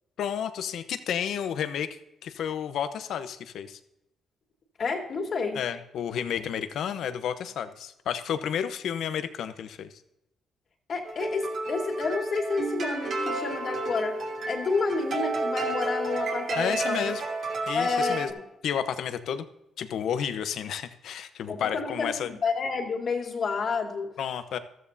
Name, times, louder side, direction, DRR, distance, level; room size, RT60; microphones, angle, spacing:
voice 1, 0.2-3.8 5.5-10.0 16.6-17.2 17.7-18.3 18.6-19.4 19.8-22.3 24.2-24.6, left 8 dB, 75° left, 10 dB, 0.9 m, -31 dB
voice 2, 4.8-5.6 10.9-17.0 17.7-18.4 21.5-24.1, left 4 dB, 50° left, 2 dB, 2.4 m, -30 dB
Wilder Wind Chimes, 11.0-18.3, right 2 dB, 60° right, 2.9 m, -31 dB
14.0 x 13.5 x 2.7 m, 0.86 s
cardioid pair, 90°, 0 cm